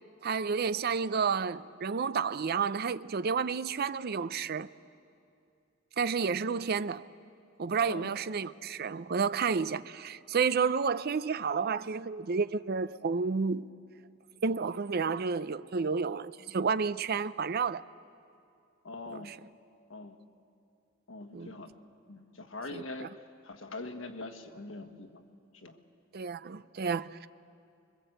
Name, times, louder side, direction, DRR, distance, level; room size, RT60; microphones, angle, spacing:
voice 1, 0.2-4.7 6.0-7.1 7.6-13.7 14.4-17.8 19.3-19.4 21.3-21.5 22.7-23.1 26.1-27.3, right 5 dB, 50° right, 0.5 m, -31 dB
voice 2, 7.8-8.2 18.8-19.3 19.9-20.2 21.1-21.7 22.1-23.1 23.4-25.2 25.5-25.8, left 2 dB, 80° left, 1.5 m, -43 dB
25.5 x 22.5 x 7.9 m
head